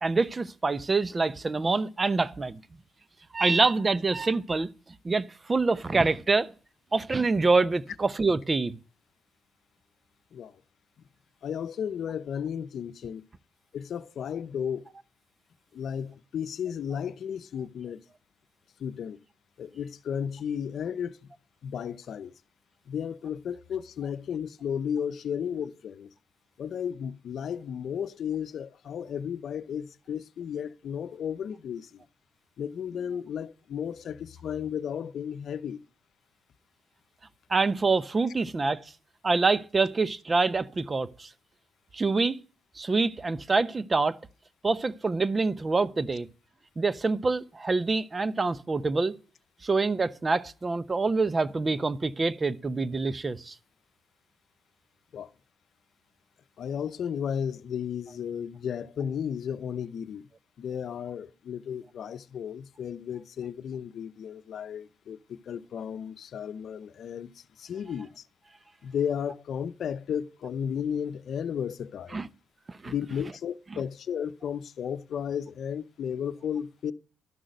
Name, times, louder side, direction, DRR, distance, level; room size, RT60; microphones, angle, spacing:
voice 1, 0.0-2.6 3.3-4.7 5.0-6.5 6.9-8.8 37.5-38.8 39.2-41.3 41.9-42.4 42.8-44.2 44.6-46.3 46.8-49.1 49.6-53.5 72.1-72.3 72.7-72.9 73.7-73.8, right 3 dB, 30° right, 0.9 m, -26 dB
voice 2, 11.4-13.2 13.7-14.9 15.7-18.0 18.8-19.2 19.6-21.2 21.6-22.3 22.9-26.1 26.6-32.0 32.6-35.8 55.1-55.3 56.6-60.2 60.6-68.3 68.8-72.3 72.8-76.9, left 8 dB, 65° left, 0.7 m, -34 dB
12.5 x 6.3 x 9.1 m
cardioid pair, 70°, 0 cm